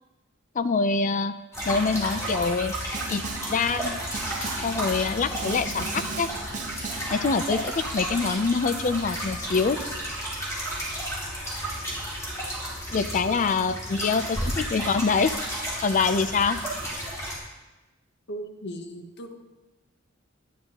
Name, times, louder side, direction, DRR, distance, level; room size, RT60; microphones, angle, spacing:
voice 1, 0.5-1.3 1.7-2.7 3.1-4.0 4.6-6.3 7.1-9.8 12.9-15.3 15.8-16.6, left 4 dB, 40° left, 11 dB, 0.4 m, -25 dB
sound 1, 1.5-17.4, equal, 15° left, 2.5 m, -32 dB
Snare drum, 2.9-3.6 4.1-4.8 5.3-7.2, right 5 dB, 40° right, 0.6 m, -36 dB
voice 2, 18.3-19.4, right 1 dB, 60° left, 4 dB, 1.1 m, -38 dB
11.0 x 10.0 x 3.0 m, 1.1 s
head